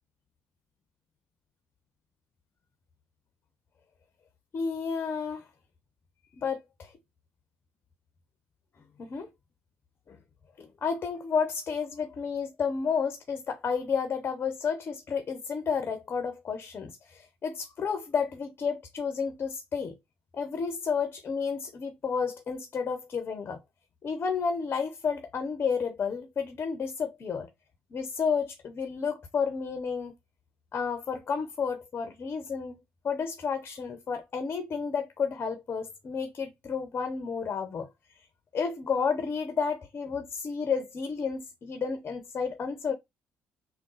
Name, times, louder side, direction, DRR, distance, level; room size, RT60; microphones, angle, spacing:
voice 1, 4.5-5.5 6.4-6.9 9.0-9.3 10.1-10.2 10.6-20.0 20.3-23.6 24.0-27.5 27.9-30.1 30.7-32.8 33.0-37.9 38.5-42.9, left 6 dB, 40° left, 0.8 m, -31 dB
3.7 x 2.2 x 3.9 m
hypercardioid pair, 60°, 5 cm